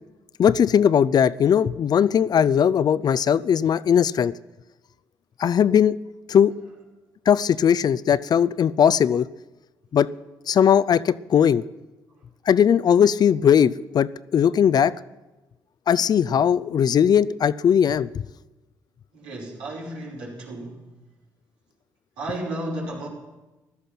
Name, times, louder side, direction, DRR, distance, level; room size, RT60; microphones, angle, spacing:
voice 1, 0.4-4.3 5.4-6.0 6.3-6.5 7.3-9.3 9.9-10.1 10.5-11.6 12.5-14.9 15.9-18.2, left 8 dB, 50° left, 19 dB, 0.5 m, -19 dB
voice 2, 19.1-20.8 22.2-23.1, right 1 dB, 85° right, -4 dB, 5.2 m, -33 dB
15.0 x 12.5 x 6.0 m, 1.1 s
supercardioid pair, 55°, 9 cm